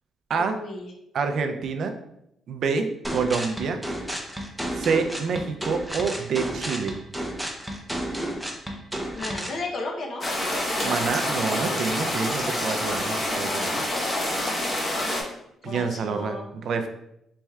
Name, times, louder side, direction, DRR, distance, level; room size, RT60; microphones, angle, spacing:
voice 1, 0.4-0.9 9.1-10.3 10.7-11.0 15.6-16.5, left 2 dB, 55° left, 1 dB, 0.8 m, -34 dB
voice 2, 1.1-2.0 2.5-3.8 4.7-7.0 10.8-13.8 15.6-16.9, right 5 dB, 65° right, 7 dB, 0.4 m, -27 dB
sound 1, 3.0-9.6, right 1 dB, ahead, 0.6 m, -32 dB
sound 2, 10.2-15.2, left 1 dB, 30° left, 1.1 m, -27 dB
4.2 x 3.2 x 2.3 m, 0.79 s
cardioid pair, 90°, 0 cm